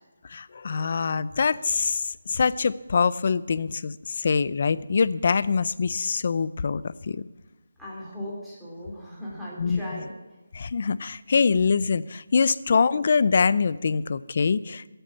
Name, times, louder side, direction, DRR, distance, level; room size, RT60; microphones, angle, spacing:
voice 1, 0.3-7.2 9.6-10.0 10.5-14.9, left 5 dB, 40° left, 18 dB, 0.5 m, -24 dB
voice 2, 7.8-10.1, equal, ahead, -8 dB, 3.0 m, -37 dB
15.0 x 9.0 x 8.5 m, 1.1 s
figure-of-eight pair, 175°, 0 cm